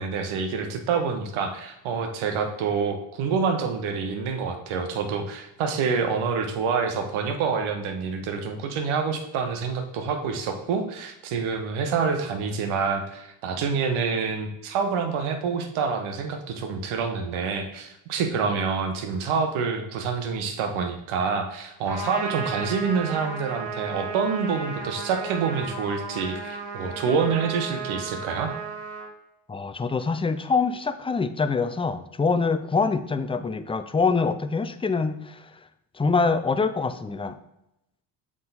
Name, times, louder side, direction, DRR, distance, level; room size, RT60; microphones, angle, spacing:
voice 1, 0.0-28.5, right 5 dB, 75° right, 6 dB, 1.2 m, -27 dB
Trumpet, 21.9-29.1, right 4 dB, 60° right, 1.5 m, -34 dB
voice 2, 29.5-35.6 35.9-37.4, left 4 dB, 10° left, 11 dB, 0.4 m, -25 dB
7.5 x 3.8 x 4.0 m, 0.86 s
supercardioid pair, 60°, 49 cm